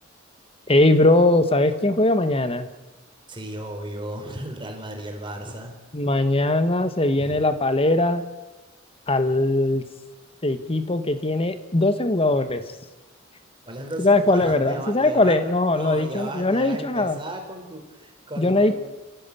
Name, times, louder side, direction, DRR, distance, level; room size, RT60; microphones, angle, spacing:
voice 1, 0.7-2.7 5.9-8.2 9.1-9.8 10.4-12.6 14.0-17.2 18.4-18.7, left 2 dB, 30° left, 10 dB, 1.5 m, -20 dB
voice 2, 3.3-5.7 7.2-7.5 13.6-15.4 15.7-18.7, right 1 dB, 25° right, 3 dB, 4.6 m, -35 dB
29.5 x 16.5 x 8.5 m, 1.2 s
head